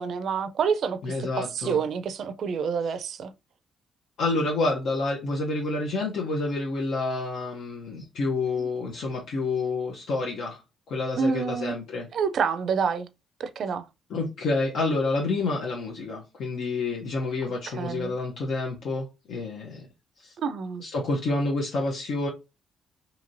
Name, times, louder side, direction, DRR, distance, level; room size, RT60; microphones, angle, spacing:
voice 1, 0.0-3.3 8.6-8.7 11.2-11.8 12.1-13.1 13.4-13.9 17.7-18.1 20.4-20.8, right 6 dB, 65° right, 0.4 m, -28 dB
voice 2, 1.0-1.8 4.2-10.6 10.9-12.1 14.1-19.9 20.2-20.3 20.8-22.3, left 3 dB, 70° left, 0.7 m, -28 dB
2.9 x 2.7 x 2.6 m
cardioid pair, 90°, 0 cm